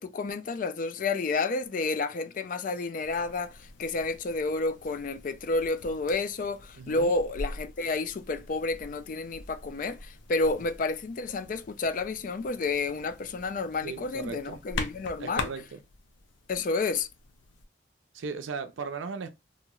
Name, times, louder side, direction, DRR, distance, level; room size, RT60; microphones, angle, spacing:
voice 1, 0.0-15.5 16.5-17.1, left 3 dB, 45° left, 0.3 m, -30 dB
sound 1, 3.0-17.6, left 3 dB, 80° left, 0.6 m, -43 dB
voice 2, 6.7-7.1 13.8-14.6 15.2-15.8 18.1-19.3, right 5 dB, 85° right, 0.4 m, -37 dB
2.9 x 2.9 x 2.3 m
head